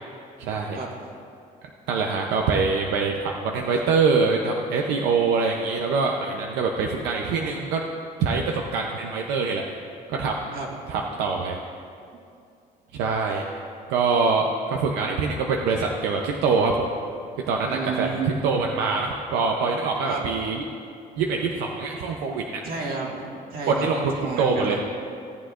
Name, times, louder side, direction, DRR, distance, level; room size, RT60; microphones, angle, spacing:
voice 1, 0.4-0.8 1.9-7.8 8.2-9.8 10.1-10.6 10.9-11.6 12.9-13.4 13.9-16.9 17.5-18.1 18.4-20.6 21.2-22.6 23.7-24.8, right 4 dB, 90° right, 1 dB, 0.7 m, -24 dB
voice 2, 17.7-18.3 20.1-20.3 22.6-24.8, right 4 dB, 60° right, -2 dB, 1.9 m, -31 dB
17.0 x 7.9 x 2.5 m, 2.4 s
cardioid pair, 110°, 17 cm